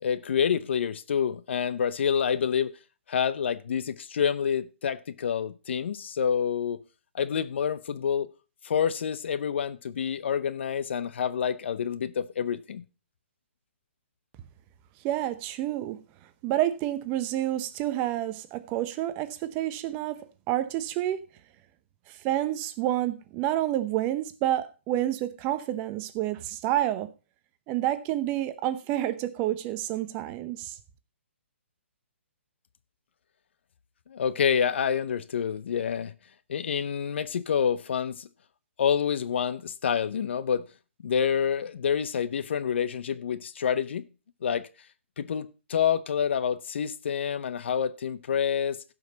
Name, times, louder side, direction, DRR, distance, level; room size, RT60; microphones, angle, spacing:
voice 1, 0.0-2.7 3.1-6.8 7.1-8.3 8.6-12.8 34.1-36.1 36.5-38.3 38.8-40.7 41.0-44.1 44.4-44.7 45.2-48.8, left 7 dB, 60° left, 0.8 m, -27 dB
voice 2, 15.0-16.0 16.4-21.2 22.2-27.1 27.7-30.8, right 13 dB, 25° right, 0.8 m, -29 dB
16.0 x 5.4 x 4.0 m
hypercardioid pair, 135°, 7 cm